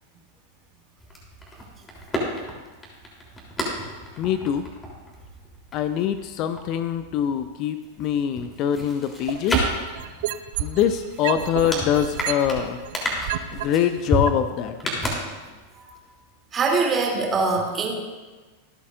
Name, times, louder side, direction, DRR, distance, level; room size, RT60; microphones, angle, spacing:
sound 1, 1.0-7.5 7.8-15.8 16.1-16.2, equal, 15° left, 3.3 m, -32 dB
voice 1, 4.2-4.7 5.7-9.7 10.6-12.8 13.5-14.8, left 9 dB, 40° left, 10 dB, 0.6 m, -24 dB
sound 2, 9.3-10.9 11.2-13.6 14.3-14.4, right 14 dB, 50° right, 0.5 m, -29 dB
voice 2, 16.5-17.9, right 4 dB, 20° right, 0 dB, 2.8 m, -23 dB
25.5 x 8.4 x 2.5 m, 1.3 s
figure-of-eight pair, 90°, 0 cm